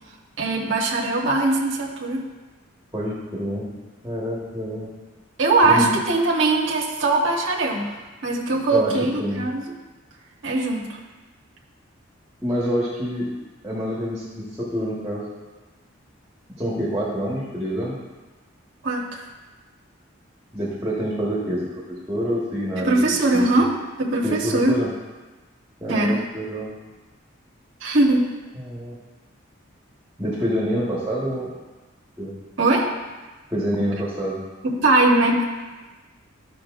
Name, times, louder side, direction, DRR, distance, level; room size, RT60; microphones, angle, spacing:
voice 1, 0.4-2.2 5.4-7.9 8.2-9.6 10.4-11.0 18.8-19.2 22.8-23.7 24.0-24.8 25.9-26.2 27.8-28.3 32.6-32.9 34.6-35.4, right 2 dB, 65° right, -2 dB, 1.1 m, -20 dB
voice 2, 2.9-3.7 4.0-4.9 5.6-5.9 8.7-9.4 12.4-13.3 13.6-15.3 16.6-17.9 20.5-23.0 23.3-23.6 24.2-24.9 25.8-26.7 28.5-29.0 30.2-31.5 32.2-32.3 33.5-34.4, equal, 15° right, -6 dB, 1.4 m, -27 dB
13.0 x 5.7 x 2.5 m, 1.2 s
head